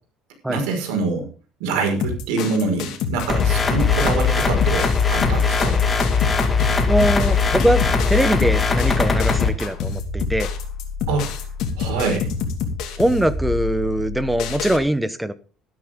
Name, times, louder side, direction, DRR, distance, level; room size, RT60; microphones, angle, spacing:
voice 1, 0.5-1.3 1.6-5.8 11.1-11.3 11.8-12.3, right 3 dB, 90° right, 5.2 m, -25 dB
sound 1, 2.0-14.8, left 5 dB, 60° left, 2.7 m, -28 dB
sound 2, 3.3-9.5, left 5 dB, 20° left, 2.1 m, -20 dB
voice 2, 6.9-10.5 13.0-15.3, right 1 dB, 5° right, 1.0 m, -21 dB
13.0 x 12.0 x 3.8 m
cardioid pair, 140°, 0 cm